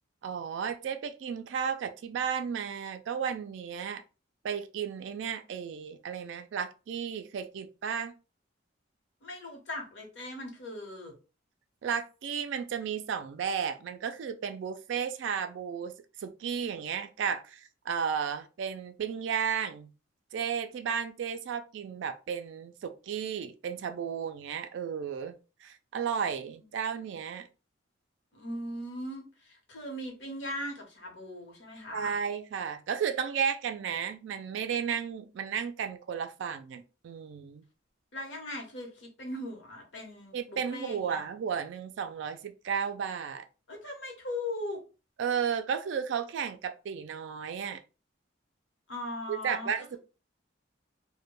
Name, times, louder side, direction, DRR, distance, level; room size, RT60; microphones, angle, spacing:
voice 1, 0.2-4.0 4.4-8.1 11.8-19.9 20.3-27.5 31.9-37.6 40.3-43.4 45.2-47.8 49.3-50.0, right 7 dB, 70° right, 0.3 m, -33 dB
voice 2, 9.2-11.1 28.3-32.1 38.1-41.2 43.7-44.8 48.9-50.0, left 1 dB, 70° left, 0.9 m, -39 dB
2.1 x 2.1 x 2.9 m
head